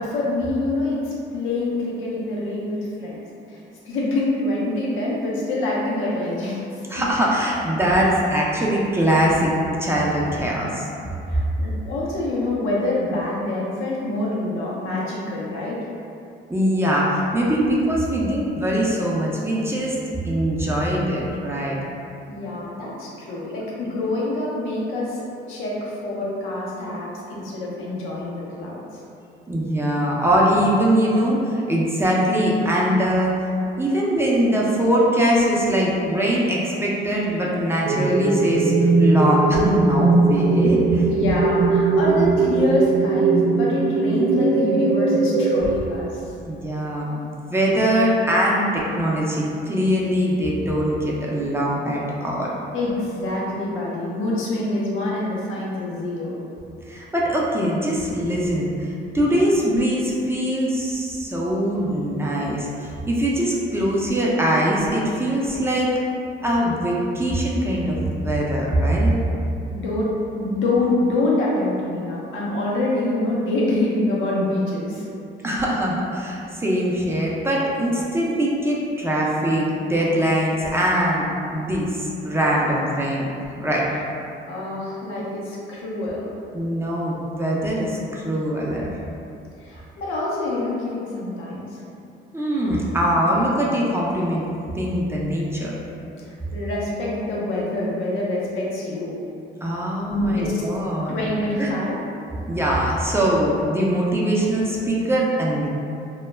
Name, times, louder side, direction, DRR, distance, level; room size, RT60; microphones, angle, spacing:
voice 1, 0.0-3.2 3.5-7.1 11.3-15.9 22.3-28.8 41.1-46.2 52.7-56.4 69.7-75.1 84.4-86.3 89.6-91.8 96.3-99.2 100.1-100.6 101.1-102.0, left 2 dB, 85° left, -5 dB, 0.6 m, -26 dB
voice 2, 6.9-9.5 9.8-10.8 11.6-11.7 16.5-20.0 20.2-21.8 29.5-33.3 33.8-41.0 46.4-52.5 56.9-65.9 66.4-69.1 75.4-81.3 81.5-83.2 83.6-83.8 86.5-89.0 92.3-94.4 94.7-95.7 99.6-101.1 101.6-101.7 102.5-105.7, equal, 10° right, -5 dB, 0.4 m, -22 dB
sound 1, 37.8-45.6, right 3 dB, 75° right, 0.5 m, -19 dB
2.2 x 2.0 x 3.1 m, 2.6 s
cardioid pair, 90°, 20 cm